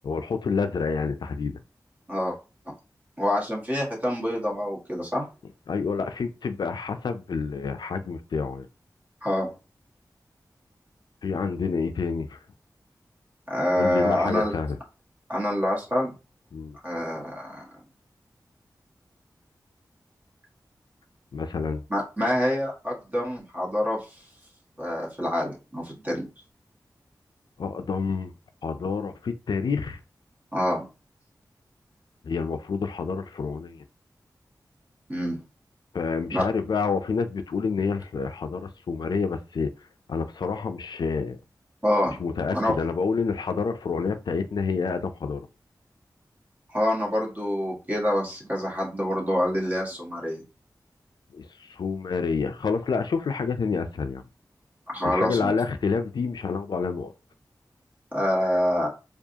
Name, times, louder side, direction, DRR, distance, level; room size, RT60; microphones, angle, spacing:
voice 1, 0.0-1.6 5.7-8.7 11.2-12.4 13.8-14.8 16.5-16.8 21.3-21.8 27.6-28.3 28.6-30.0 32.2-33.8 35.9-41.4 42.2-45.5 51.3-54.2 55.0-57.1, left 5 dB, 75° left, 0.4 m, -28 dB
voice 2, 3.2-5.3 9.2-9.5 13.5-14.6 15.3-16.1 16.8-17.6 21.9-24.1 24.8-26.2 30.5-30.8 35.1-35.4 36.3-36.4 41.8-42.2 42.5-42.7 46.7-50.4 54.9-55.5 58.1-58.9, left 1 dB, 25° right, 1.6 m, -26 dB
4.6 x 2.4 x 2.8 m
wide cardioid pair, 75°, 7 cm